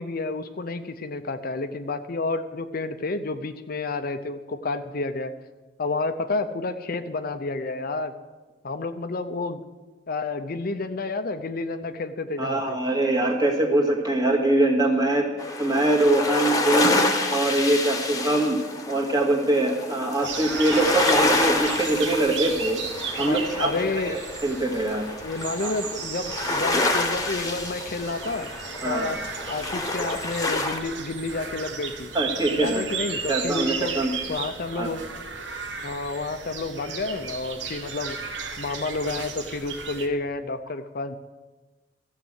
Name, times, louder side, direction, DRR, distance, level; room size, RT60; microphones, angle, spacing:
voice 1, 0.0-5.3 5.8-8.1 8.6-9.6 10.1-12.8 20.2-20.3 23.2-24.2 25.2-28.5 28.8-29.2 29.5-32.1 32.6-33.9 34.3-35.0 35.8-38.2 38.6-41.2, left 3 dB, 55° left, 9 dB, 0.7 m, -30 dB
voice 2, 12.4-15.3 15.6-17.0 17.3-18.6 18.9-22.8 23.2-23.7 24.0-25.1 25.6-25.7 28.8-29.1 32.1-32.8 33.3-34.1 34.8-34.9, right 2 dB, 25° right, 0 dB, 2.2 m, -23 dB
sound 1, 15.4-30.8, left 2 dB, 20° left, 1.3 m, -28 dB
sound 2, 20.2-40.1, right 5 dB, 80° right, 1.5 m, -35 dB
14.5 x 7.5 x 8.1 m, 1.2 s
head